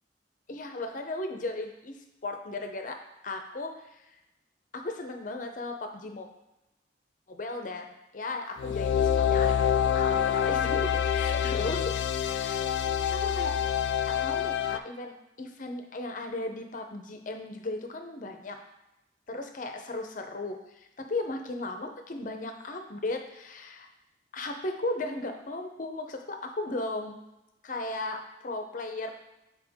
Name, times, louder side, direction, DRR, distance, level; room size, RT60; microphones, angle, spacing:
voice 1, 0.5-3.0 3.2-4.2 4.7-6.3 7.3-12.6 13.0-13.5 14.1-18.6 19.3-23.9 24.3-27.2 27.6-29.1, left 2 dB, 45° left, 4 dB, 0.6 m, -36 dB
sound 1, 8.6-14.8, left 8 dB, 80° left, 0.3 m, -26 dB
6.9 x 4.2 x 3.5 m, 0.94 s
head